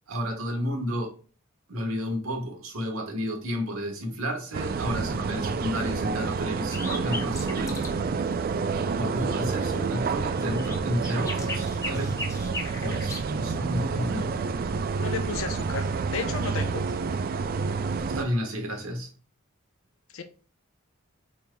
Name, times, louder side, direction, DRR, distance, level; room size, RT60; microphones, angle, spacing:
voice 1, 0.1-1.1 1.7-8.0 8.9-12.3 12.8-14.4 18.0-19.1, equal, 90° right, 1.4 m, -31 dB
sound 1, 4.5-18.3, right 5 dB, 45° right, 0.3 m, -29 dB
sound 2, 6.6-8.0 8.3-8.4 8.7-9.1 9.4-13.3 15.4-16.2 16.5-17.0, left 2 dB, 15° left, 0.7 m, -38 dB
voice 2, 15.0-15.9 16.1-16.8 20.1-20.2, left 5 dB, 75° left, 0.7 m, -32 dB
5.2 x 4.5 x 2.3 m
head